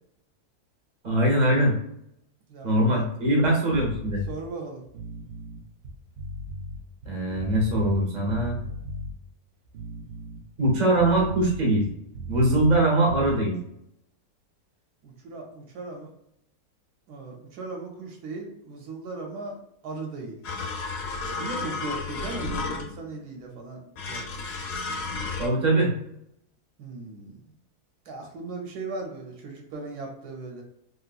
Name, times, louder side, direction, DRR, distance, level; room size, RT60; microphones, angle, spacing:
voice 1, 1.0-1.7 2.6-4.2 7.1-8.6 10.6-11.8 12.3-13.6 25.4-25.9, right 1 dB, 35° right, -1 dB, 0.9 m, -22 dB
voice 2, 2.5-3.0 4.3-4.8 15.0-16.1 17.1-19.6 19.8-20.4 21.4-24.4 26.8-27.5 28.1-30.6, right 3 dB, 85° right, 1 dB, 1.3 m, -37 dB
sound 1, 3.7-4.3 4.9-8.0 8.3-9.1 9.7-12.8 13.1-13.3, right 1 dB, 60° right, 0.8 m, -36 dB
sound 2, 20.4-23.1 24.0-25.5, left 3 dB, 85° left, 1.2 m, -32 dB
3.1 x 2.9 x 2.4 m, 0.76 s
omnidirectional pair, 1.6 m